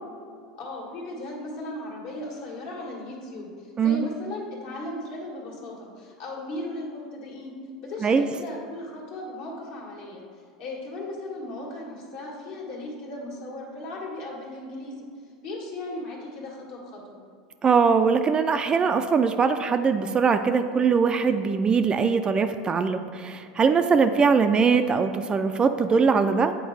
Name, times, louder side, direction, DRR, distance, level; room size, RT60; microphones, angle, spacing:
voice 1, 0.6-7.5 7.8-10.2 10.6-14.9 15.4-17.2, left 1 dB, 60° left, -2 dB, 1.6 m, -37 dB
voice 2, 17.6-26.5, right 5 dB, 25° right, 8 dB, 0.3 m, -21 dB
8.0 x 4.6 x 3.3 m, 2.3 s
hypercardioid pair, 85°, 4 cm